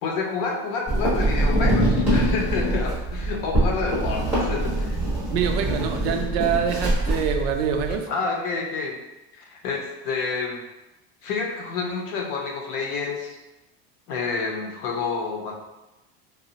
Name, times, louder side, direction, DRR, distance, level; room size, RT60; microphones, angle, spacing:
voice 1, 0.0-5.0 8.1-9.0 9.3-10.6 11.2-13.4 14.1-15.5, left 4 dB, 60° left, 1 dB, 0.7 m, -29 dB
sound 1, 0.9-7.9, right 1 dB, 5° right, 1.2 m, -24 dB
voice 2, 5.3-8.1, right 7 dB, 80° right, 4 dB, 0.5 m, -25 dB
3.9 x 2.0 x 2.7 m, 1.0 s
cardioid pair, 175°, 30 cm